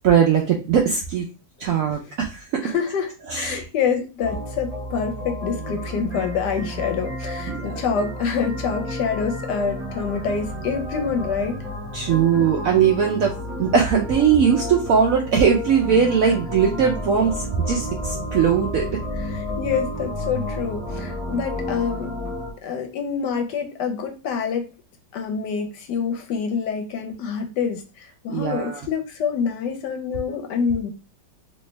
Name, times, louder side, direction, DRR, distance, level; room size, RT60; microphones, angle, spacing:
voice 1, 0.0-1.2 1.6-2.6 3.3-3.6 7.5-7.7 11.9-13.3 13.6-18.8 28.3-28.8, right 7 dB, 85° right, 1 dB, 0.7 m, -20 dB
voice 2, 2.6-11.6 19.2-22.1 22.6-24.7 25.1-30.9, left 6 dB, 75° left, 4 dB, 1.1 m, -26 dB
sound 1, 4.2-22.5, left 1 dB, 5° right, 0.8 m, -31 dB
3.3 x 2.7 x 3.1 m, 0.31 s
omnidirectional pair, 2.1 m